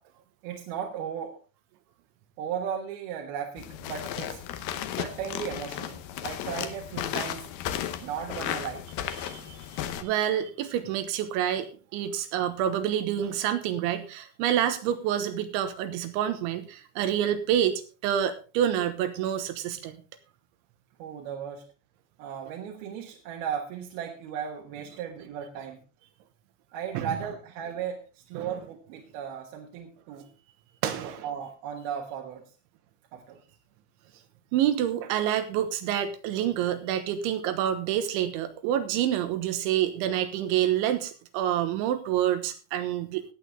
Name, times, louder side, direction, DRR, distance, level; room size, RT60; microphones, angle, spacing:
voice 1, 0.4-1.4 2.4-4.4 5.0-7.4 8.0-8.8 21.0-21.6 22.2-25.8 26.7-30.3 30.9-32.4 33.1-33.4, right 8 dB, 65° right, 0 dB, 2.9 m, -36 dB
sound 1, 3.6-10.0, left 11 dB, 75° left, 2.4 m, -34 dB
voice 2, 9.2-20.0 27.0-27.1 28.4-28.5 30.8-31.3 34.5-43.3, right 10 dB, 85° right, 10 dB, 3.5 m, -28 dB
17.5 x 8.5 x 3.4 m, 0.34 s
omnidirectional pair, 5.3 m